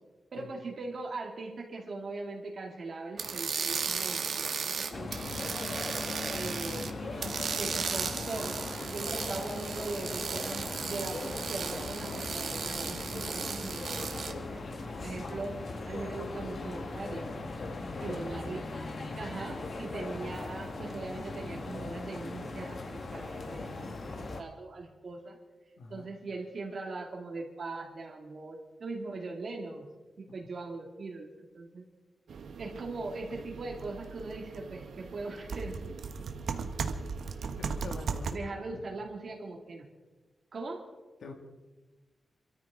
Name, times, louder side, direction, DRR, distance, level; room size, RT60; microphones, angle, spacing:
voice 1, 0.3-5.3 6.3-15.6 15.9-17.3 18.0-23.8 24.1-25.4 25.9-29.9 30.2-31.8 32.6-36.3 38.3-39.8 40.5-40.9, right 3 dB, 55° right, 0 dB, 2.5 m, -40 dB
sound 1, 3.2-6.9 7.2-14.3, right 6 dB, 70° right, 1.4 m, -35 dB
sound 2, 4.9-24.4, left 3 dB, 50° left, 1.6 m, -39 dB
voice 2, 17.9-18.4 19.0-19.2 25.8-26.1 37.6-38.4 38.7-39.1 41.2-41.3, left 3 dB, 75° left, 3 dB, 2.1 m, -46 dB
sound 3, 32.3-38.3, right 5 dB, 90° right, 1.0 m, -38 dB
27.0 x 13.5 x 3.7 m, 1.2 s
wide cardioid pair, 150°, 0 cm